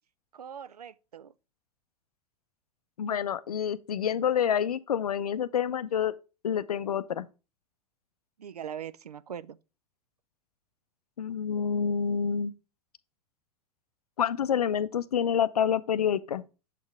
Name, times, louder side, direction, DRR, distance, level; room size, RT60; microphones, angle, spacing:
voice 1, 0.3-1.3 8.4-9.6, right 8 dB, 75° right, 0.4 m, -41 dB
voice 2, 3.0-6.1 6.4-7.3 11.2-12.5 14.2-16.4, left 8 dB, 70° left, 0.5 m, -28 dB
7.2 x 4.4 x 3.4 m
figure-of-eight pair, 90°, 20 cm